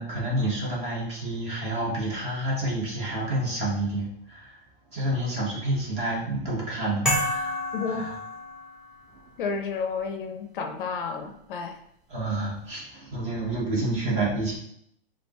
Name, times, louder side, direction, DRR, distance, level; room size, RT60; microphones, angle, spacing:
voice 1, 0.0-4.6 4.9-8.2 9.1-9.2 12.1-14.5, right 1 dB, 20° right, -5 dB, 1.6 m, -29 dB
sound 1, 7.0-9.0, left 1 dB, ahead, 0.9 m, -29 dB
voice 2, 7.7-8.1 9.4-11.8, left 5 dB, 60° left, 6 dB, 0.7 m, -31 dB
6.6 x 2.5 x 3.1 m, 0.72 s
hypercardioid pair, 155°, 30 cm